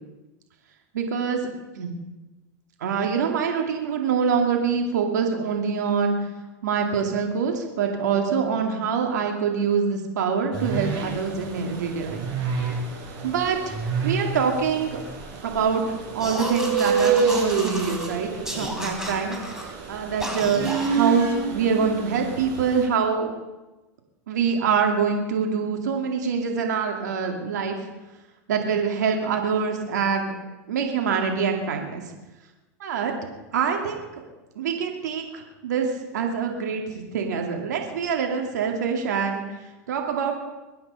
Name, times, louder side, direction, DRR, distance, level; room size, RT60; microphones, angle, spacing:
voice 1, 0.9-1.5 1.7-1.9 2.8-6.3 6.6-12.3 13.2-13.7 14.0-15.0 15.4-20.6 20.9-23.3 24.3-27.8 28.5-30.4 30.7-32.0 32.8-34.0 34.6-39.4 39.9-40.3, right 6 dB, 85° right, 2 dB, 2.5 m, -25 dB
sound 1, 10.5-22.9, right 5 dB, 50° right, 6.4 m, -28 dB
sound 2, 16.2-18.1 18.4-19.7 20.2-21.0, equal, 5° right, 4.0 m, -33 dB
23.0 x 9.7 x 5.6 m, 1.1 s
hypercardioid pair, 105°, 9 cm